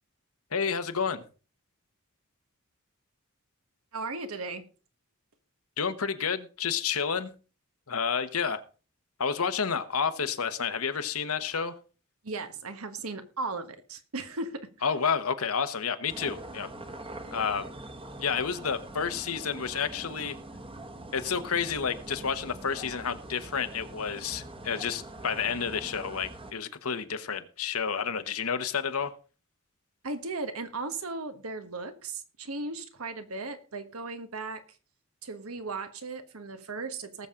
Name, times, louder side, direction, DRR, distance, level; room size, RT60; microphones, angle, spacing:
voice 1, 0.5-1.2 5.8-7.3 7.9-8.6 9.2-11.7 14.8-16.7 17.3-17.7 18.2-20.4 21.1-29.1, left 6 dB, 80° left, 1.1 m, -30 dB
voice 2, 3.9-4.7 12.2-14.7 30.0-34.6 35.2-37.3, right 3 dB, 85° right, 1.4 m, -36 dB
sound 1, 16.1-26.5, right 1 dB, 25° right, 1.1 m, -43 dB
19.0 x 7.2 x 3.8 m
head